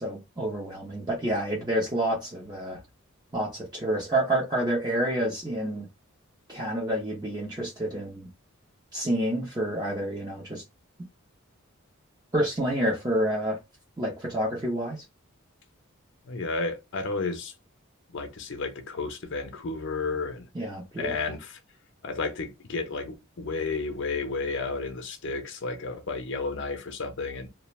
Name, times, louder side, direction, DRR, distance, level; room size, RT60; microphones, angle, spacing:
voice 1, 0.0-2.8 3.3-5.9 6.5-8.3 8.9-10.6 12.3-13.6 14.0-15.0 20.5-21.2, right 1 dB, 20° right, 0.7 m, -28 dB
voice 2, 16.3-17.5 18.1-20.5 21.0-21.6 22.0-27.5, left 3 dB, 60° left, 0.6 m, -32 dB
2.4 x 2.1 x 3.0 m
head